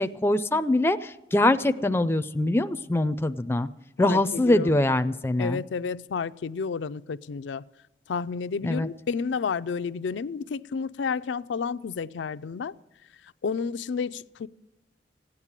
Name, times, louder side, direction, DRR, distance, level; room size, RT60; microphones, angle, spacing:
voice 1, 0.0-3.7 4.0-5.6 8.6-8.9, left 1 dB, 15° left, 0.4 m, -23 dB
voice 2, 4.0-4.8 5.4-7.6 8.1-12.7 13.4-14.5, left 5 dB, 90° left, 0.4 m, -31 dB
16.0 x 9.7 x 7.4 m
head